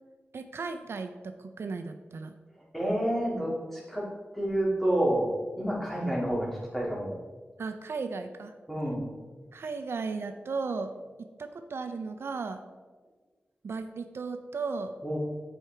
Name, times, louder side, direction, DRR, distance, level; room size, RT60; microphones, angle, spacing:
voice 1, 0.3-2.3 7.6-8.5 9.5-10.9 11.4-12.6 13.6-14.9, right 4 dB, 75° right, 7 dB, 0.4 m, -35 dB
voice 2, 2.7-4.1 4.3-7.2 8.7-9.1 15.0-15.2, right 1 dB, 5° left, -5 dB, 2.1 m, -29 dB
9.0 x 4.7 x 3.3 m, 1.4 s
wide cardioid pair, 100°, 4 cm